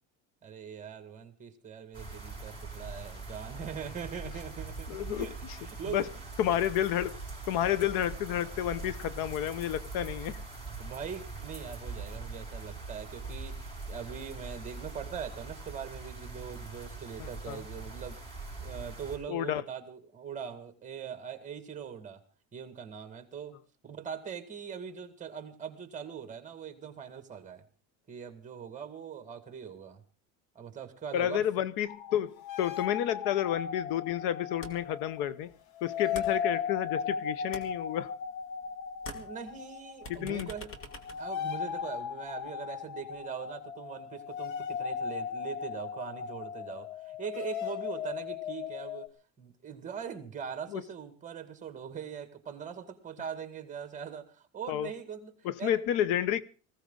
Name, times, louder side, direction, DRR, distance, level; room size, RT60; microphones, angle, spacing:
voice 1, 0.4-6.1 10.7-18.2 18.6-22.2 22.5-23.6 23.8-27.6 28.1-30.0 30.6-31.4 39.1-40.7 41.2-49.1 49.4-55.8, right 7 dB, 20° right, 1.9 m, -41 dB
sound 1, 1.9-19.2, right 3 dB, 15° left, 6.5 m, -42 dB
voice 2, 4.9-5.3 5.9-6.1 6.4-7.2 7.5-10.4 17.2-17.6 19.3-19.6 31.1-35.5 35.8-38.1 40.1-40.5 50.7-50.8 54.7-54.9 55.4-56.4, left 11 dB, 65° left, 0.9 m, -30 dB
sound 2, 31.9-35.3 35.8-49.1, left 7 dB, 80° left, 1.6 m, -37 dB
sound 3, 34.6-35.0 35.3-37.1 37.4-38.7 38.9-42.0, left 1 dB, 35° left, 2.3 m, -47 dB
19.5 x 15.5 x 3.8 m
cardioid pair, 160°, 39 cm